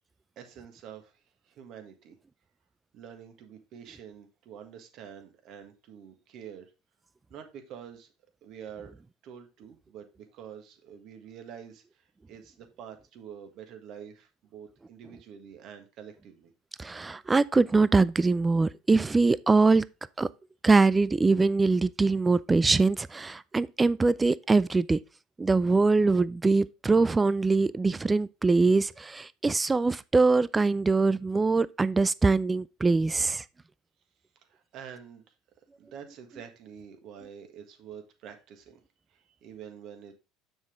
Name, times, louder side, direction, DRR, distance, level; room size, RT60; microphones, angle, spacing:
voice 1, 0.4-2.2 2.9-6.7 7.3-8.1 8.4-9.0 9.2-16.5 34.4-35.3 35.8-38.8 39.1-40.2, right 8 dB, 55° right, 1.7 m, -47 dB
voice 2, 16.8-19.8 20.2-20.3 20.6-25.0 25.4-33.4, right 3 dB, 20° right, 0.4 m, -23 dB
7.1 x 6.3 x 3.7 m
hypercardioid pair, 75°, 0 cm